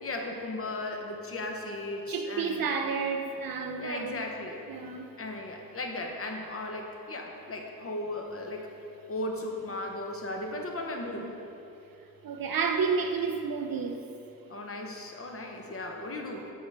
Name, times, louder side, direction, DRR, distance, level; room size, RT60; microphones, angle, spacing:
voice 1, 0.0-2.7 3.8-4.6 5.2-8.7 9.1-11.4 14.5-16.5, left 2 dB, 40° left, 2 dB, 0.7 m, -36 dB
voice 2, 2.1-4.2 4.7-5.1 12.2-14.1, right 5 dB, 70° right, 4 dB, 0.5 m, -30 dB
7.9 x 6.1 x 3.3 m, 2.8 s
wide cardioid pair, 160°, 37 cm